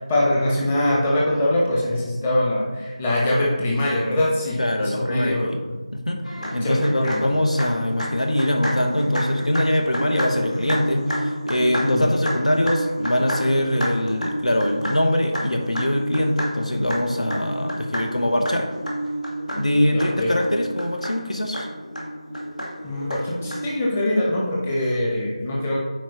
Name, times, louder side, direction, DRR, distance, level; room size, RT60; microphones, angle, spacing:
voice 1, 0.1-5.5 6.4-7.2 11.9-12.1 19.9-20.3 22.8-25.8, left 1 dB, 15° left, -4 dB, 1.0 m, -23 dB
voice 2, 4.6-5.6 5.9-6.2 6.5-18.7 19.5-21.7, left 1 dB, 75° left, 4 dB, 1.1 m, -22 dB
sound 1, 6.2-23.8, equal, 90° left, 1.8 m, -31 dB
8.8 x 4.7 x 3.0 m, 1.3 s
figure-of-eight pair, 165°, 4 cm